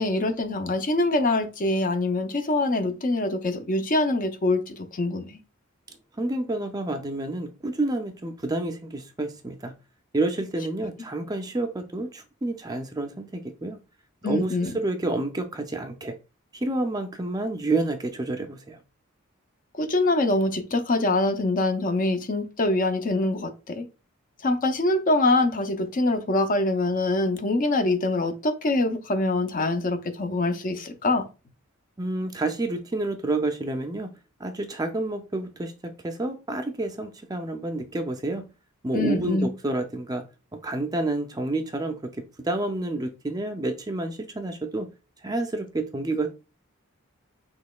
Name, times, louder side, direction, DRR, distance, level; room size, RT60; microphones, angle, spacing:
voice 1, 0.0-5.4 14.2-14.7 19.7-23.8 24.4-31.3 38.9-39.5, left 2 dB, 40° left, 0.5 m, -24 dB
voice 2, 6.2-9.7 10.1-13.8 14.2-16.1 16.5-18.8 32.0-34.1 34.4-38.5 38.8-40.2 40.5-42.1 42.4-44.9 45.2-46.3, right 2 dB, 15° right, 0.4 m, -29 dB
6.2 x 3.0 x 2.3 m
head